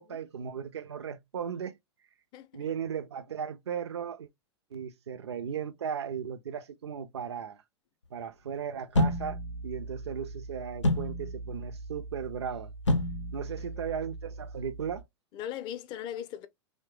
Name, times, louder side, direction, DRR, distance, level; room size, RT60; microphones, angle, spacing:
voice 1, 0.0-1.8 2.5-4.3 4.7-7.6 8.1-12.7 13.3-15.0, right 7 dB, 65° right, 0.5 m, -36 dB
voice 2, 2.3-2.7 13.6-13.8 15.3-16.5, left 10 dB, 30° left, 0.5 m, -39 dB
sound 1, 8.9-15.0, left 1 dB, 80° left, 0.5 m, -32 dB
3.1 x 2.1 x 3.0 m
figure-of-eight pair, 100°, 15 cm